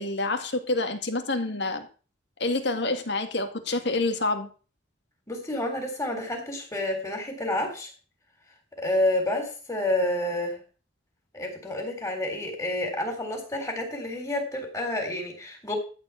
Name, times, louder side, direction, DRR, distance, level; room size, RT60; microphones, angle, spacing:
voice 1, 0.0-1.9 2.4-4.5, left 2 dB, 60° left, 6 dB, 2.0 m, -27 dB
voice 2, 5.3-7.9 8.8-10.6 11.3-15.8, left 1 dB, 15° left, 3 dB, 3.8 m, -29 dB
14.0 x 4.9 x 8.4 m, 0.37 s
head